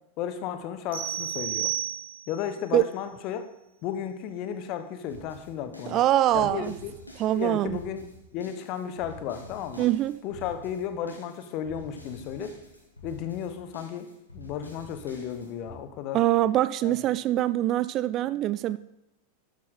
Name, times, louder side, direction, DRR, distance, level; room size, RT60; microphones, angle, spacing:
voice 1, 0.2-1.7 2.3-3.4 3.8-6.0 6.3-6.9 7.3-9.9 10.2-12.5 13.0-14.1 14.3-16.2 16.8-17.0, left 9 dB, 40° left, 9 dB, 1.2 m, -34 dB
sound 1, 0.9-2.4, right 12 dB, 60° right, 4.2 m, -31 dB
sound 2, 5.1-15.8, left 1 dB, 85° left, 2.6 m, -47 dB
voice 2, 5.9-6.7 7.2-7.8 9.8-10.1 16.1-18.8, right 13 dB, 35° right, 16 dB, 0.4 m, -24 dB
12.5 x 10.5 x 3.8 m, 0.91 s
figure-of-eight pair, 90°, 0 cm